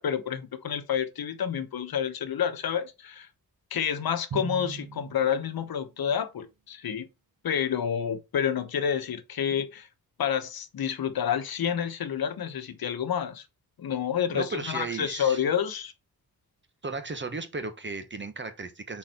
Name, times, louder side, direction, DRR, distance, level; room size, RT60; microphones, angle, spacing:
voice 1, 0.0-3.3 3.7-7.0 7.4-9.9 10.2-13.4 13.8-15.9, left 8 dB, 70° left, 1.1 m, -29 dB
Drum, 4.3-6.0, right 8 dB, 60° right, 0.9 m, -40 dB
voice 2, 14.3-15.4 16.8-19.0, right 3 dB, 30° right, 1.2 m, -35 dB
5.9 x 4.2 x 4.3 m
cardioid pair, 65°, 38 cm